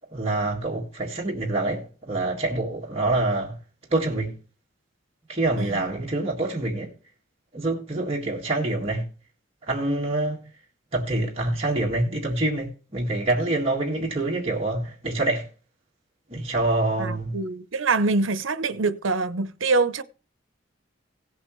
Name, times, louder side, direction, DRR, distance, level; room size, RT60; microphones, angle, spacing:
voice 1, 0.1-3.6 3.9-4.4 5.3-6.9 7.5-9.1 9.7-10.5 10.9-15.5 16.3-17.4, right 2 dB, 30° right, 1.9 m, -26 dB
voice 2, 17.0-20.0, right 3 dB, 85° right, 0.8 m, -25 dB
17.0 x 7.9 x 3.2 m
head